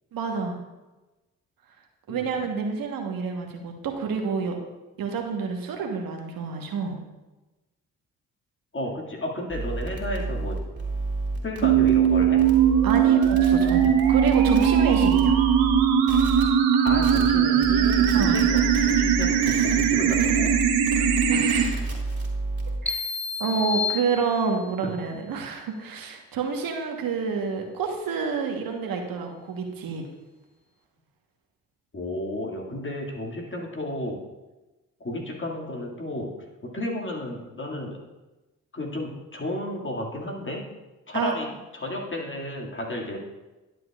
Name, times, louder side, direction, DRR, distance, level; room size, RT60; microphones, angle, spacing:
voice 1, 0.1-0.6 2.1-4.5 5.0-7.0 12.8-15.4 18.1-18.4 21.3-21.8 22.8-23.0 23.4-30.0 41.1-41.3, right 5 dB, 70° right, 2 dB, 1.3 m, -28 dB
voice 2, 8.7-10.6 11.4-12.4 16.8-20.6 21.0-21.1 24.8-24.9 31.9-34.2 35.0-36.4 36.6-38.0 38.7-40.7 41.1-41.5 41.7-43.2, left 1 dB, 30° left, -1 dB, 2.2 m, -32 dB
sound 1, 9.5-15.8 16.1-16.4 16.9-17.3 17.6-22.8, right 3 dB, 30° right, 2.7 m, -30 dB
sound 2, 11.6-21.6, right 8 dB, 85° right, 0.9 m, -20 dB
sound 3, 22.9-24.8, left 5 dB, 5° left, 0.6 m, -30 dB
11.0 x 7.6 x 2.4 m, 1.1 s
hypercardioid pair, 50°, 37 cm